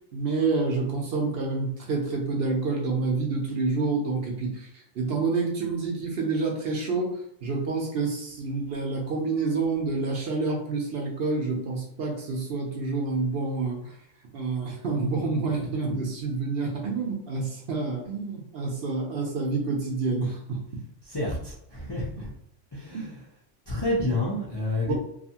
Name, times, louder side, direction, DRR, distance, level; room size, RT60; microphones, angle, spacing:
voice 1, 0.1-14.0 14.3-20.6 22.2-22.3 22.9-23.2 24.9-25.0, right 3 dB, 60° right, 0 dB, 0.7 m, -28 dB
voice 2, 21.1-22.3 22.7-23.1 23.7-24.9, left 1 dB, 35° left, -6 dB, 0.4 m, -29 dB
2.6 x 2.4 x 2.7 m, 0.74 s
omnidirectional pair, 1.3 m